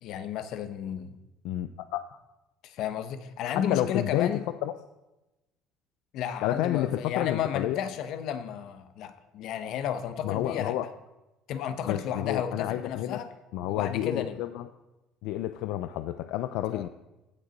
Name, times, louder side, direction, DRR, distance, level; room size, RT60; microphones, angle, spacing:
voice 1, 0.0-1.2 2.6-4.4 6.1-10.7 11.5-13.3 13.7-14.4 16.7-16.8, left 9 dB, 55° left, 10 dB, 0.8 m, -32 dB
voice 2, 1.4-2.0 3.6-4.3 4.6-4.7 6.4-7.8 10.2-10.9 11.9-13.2 13.5-14.6 15.2-16.9, left 13 dB, 70° left, 10 dB, 0.4 m, -30 dB
16.0 x 6.5 x 4.0 m, 0.99 s
cardioid pair, 170°, 0 cm